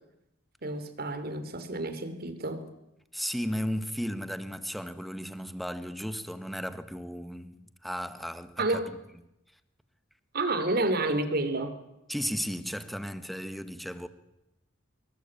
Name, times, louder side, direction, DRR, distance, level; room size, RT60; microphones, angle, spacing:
voice 1, 0.6-2.7 8.6-8.9 10.3-11.7, right 2 dB, 55° right, 3.1 m, -29 dB
voice 2, 3.1-8.8 12.1-14.1, equal, ahead, 1.6 m, -35 dB
25.5 x 22.5 x 8.9 m
head